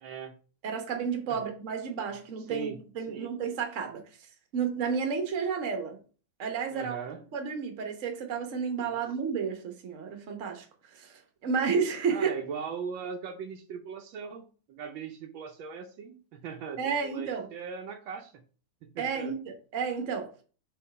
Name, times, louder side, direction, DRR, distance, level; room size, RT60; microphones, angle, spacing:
voice 1, 0.0-0.3 1.3-1.4 2.5-2.8 3.1-3.3 6.7-7.2 8.9-9.0 12.1-18.4 18.8-19.4, right 6 dB, 75° right, 1.4 m, -39 dB
voice 2, 0.6-6.0 6.4-7.0 7.3-10.7 10.9-12.3 16.8-17.5 19.0-20.4, right 6 dB, 45° right, 1.2 m, -32 dB
4.5 x 3.9 x 5.3 m
omnidirectional pair, 2.2 m